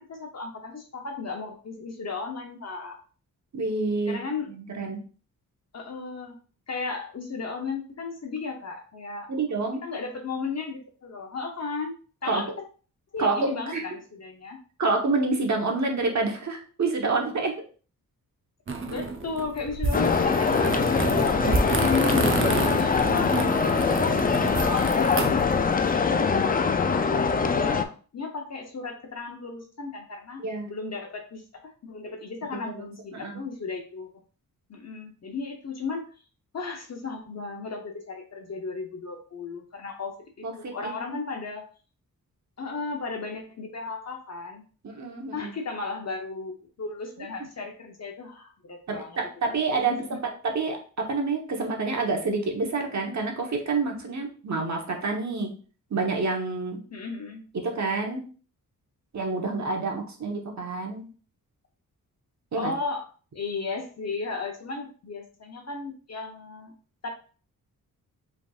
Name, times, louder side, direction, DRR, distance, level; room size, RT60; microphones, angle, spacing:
voice 1, 0.0-3.0 4.1-4.5 5.7-6.4 6.7-9.6 9.8-11.9 12.2-12.5 13.1-14.6 18.8-25.4 25.9-34.1 34.7-36.1 36.5-40.2 40.6-41.6 42.6-44.6 45.3-49.1 49.9-50.0 56.9-57.4 62.5-63.0 63.3-66.7 67.0-67.1, left 4 dB, 45° left, 3 dB, 0.8 m, -35 dB
voice 2, 3.5-4.2 4.5-5.0 9.3-9.8 12.2-12.4 13.2-14.0 14.8-17.6 30.4-30.7 32.5-32.8 33.1-33.4 40.4-41.0 44.8-45.5 47.2-47.3 48.9-55.6 55.9-56.8 57.5-58.2 59.1-61.0 62.5-62.7, right 3 dB, 50° right, 2 dB, 1.1 m, -28 dB
sound 1, 18.7-25.8, right 3 dB, 35° right, 0.7 m, -29 dB
sound 2, 19.9-27.8, left 5 dB, 25° left, 0.4 m, -23 dB
5.1 x 3.5 x 2.4 m, 0.39 s
wide cardioid pair, 95°, 35 cm